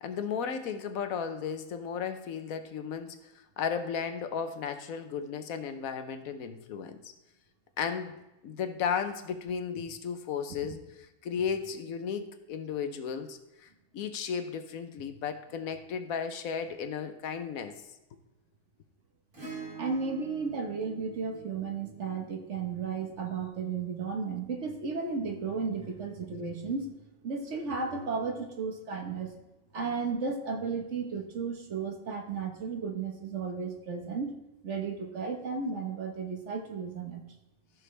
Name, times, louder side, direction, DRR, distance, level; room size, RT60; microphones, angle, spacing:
voice 1, 0.0-7.1 7.8-8.1 8.4-17.8, left 7 dB, 75° left, 9 dB, 1.2 m, -35 dB
Acoustic guitar / Strum, 19.3-23.9 25.8-25.9, right 4 dB, 85° right, 3.9 m, -47 dB
voice 2, 19.8-26.9 27.2-29.3 29.7-34.3 34.6-37.2, right 5 dB, 55° right, 3 dB, 1.5 m, -34 dB
13.5 x 6.1 x 3.3 m, 0.95 s
omnidirectional pair, 1.5 m